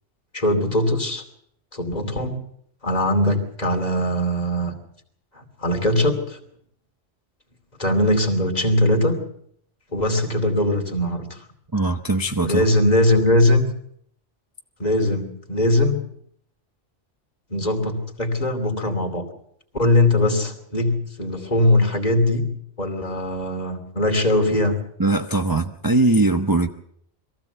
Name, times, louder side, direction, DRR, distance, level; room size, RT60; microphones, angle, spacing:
voice 1, 0.3-1.2 1.7-2.4 2.8-4.7 5.3-6.4 7.8-9.2 9.9-11.4 12.4-13.6 14.8-16.0 17.5-19.3 19.7-22.5 22.8-24.8, left 1 dB, 35° left, 4 dB, 3.0 m, -21 dB
voice 2, 11.7-12.6 25.0-26.7, right 2 dB, 20° right, 5 dB, 0.8 m, -20 dB
22.5 x 15.5 x 8.1 m, 0.68 s
omnidirectional pair, 1.2 m